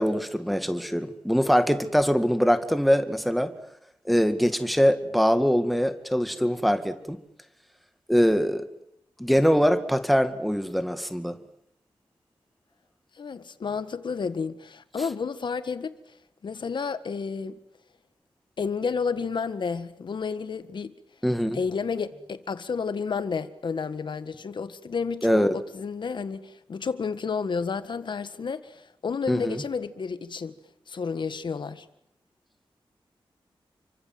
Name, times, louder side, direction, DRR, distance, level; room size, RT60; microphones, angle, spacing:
voice 1, 0.0-3.5 4.1-7.2 8.1-8.7 9.2-11.4 21.2-21.6 25.2-25.6 29.3-29.6, equal, ahead, 2.0 m, -23 dB
voice 2, 13.1-16.0 16.4-17.6 18.6-20.9 21.5-30.5 30.9-31.8, left 5 dB, 55° left, 1.7 m, -31 dB
29.5 x 24.5 x 7.8 m
wide cardioid pair, 165°, 9 cm